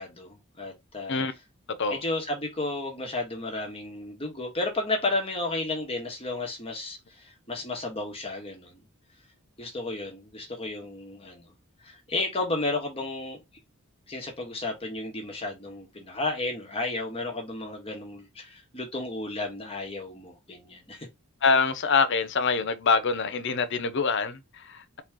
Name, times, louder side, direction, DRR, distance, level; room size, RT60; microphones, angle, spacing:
voice 1, 0.0-1.2 1.9-8.8 9.6-11.4 11.8-13.4 14.1-21.1, left 2 dB, 25° left, 1.5 m, -33 dB
voice 2, 21.4-25.0, left 5 dB, 55° left, 0.7 m, -25 dB
4.1 x 3.1 x 3.7 m
head